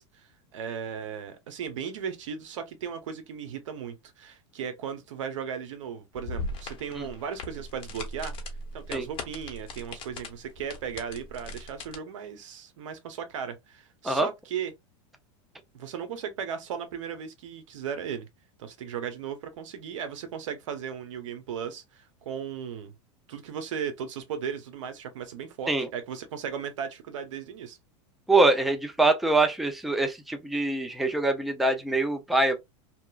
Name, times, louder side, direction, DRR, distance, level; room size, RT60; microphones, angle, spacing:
voice 1, 0.0-8.3 8.7-14.7 15.7-18.3 18.6-22.9 23.3-27.8, right 7 dB, 85° right, 0.8 m, -36 dB
sound 1, 6.1-12.0, left 2 dB, 35° left, 1.0 m, -39 dB
voice 2, 28.3-32.6, right 2 dB, ahead, 0.4 m, -24 dB
2.9 x 2.3 x 2.2 m
supercardioid pair, 130°, 16 cm